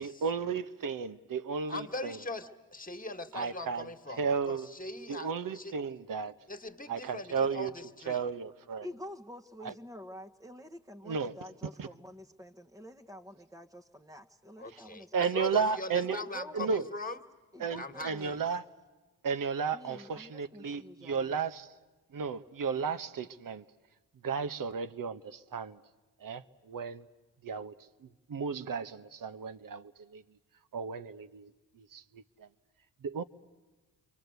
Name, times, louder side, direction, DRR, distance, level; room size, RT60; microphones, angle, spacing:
voice 1, 0.0-2.2 3.3-3.9 4.2-4.7 5.1-6.3 6.9-7.7 8.1-8.9 9.6-9.7 11.0-11.3 11.8-11.9 15.1-16.2 16.5-16.8 17.6-18.6 19.2-21.7 22.1-23.6 24.2-25.8 26.2-27.1 27.4-27.7 28.0-30.2 30.7-31.5 31.8-32.5 33.0-33.2, right 5 dB, 55° right, 1.1 m, -34 dB
voice 2, 1.7-5.7 6.5-8.2 14.6-17.2 17.8-18.4, left 2 dB, 20° left, 2.0 m, -41 dB
voice 3, 8.8-15.4 16.1-16.9 17.5-18.4 19.7-21.4, left 1 dB, 10° right, 1.3 m, -47 dB
28.5 x 24.0 x 8.1 m
supercardioid pair, 50°, 39 cm